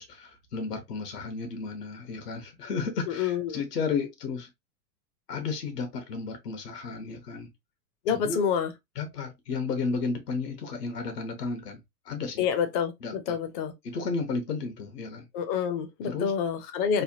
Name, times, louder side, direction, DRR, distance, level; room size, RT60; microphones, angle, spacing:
voice 1, 0.0-4.5 5.3-7.5 8.1-8.4 8.9-12.4 13.0-13.4 13.8-15.3 16.0-16.3 16.9-17.0, left 4 dB, 80° left, 1.2 m, -33 dB
voice 2, 3.1-3.6 8.1-8.7 12.4-13.7 15.3-17.0, left 7 dB, 30° left, 0.5 m, -28 dB
3.3 x 2.2 x 2.6 m
hypercardioid pair, 115°, 47 cm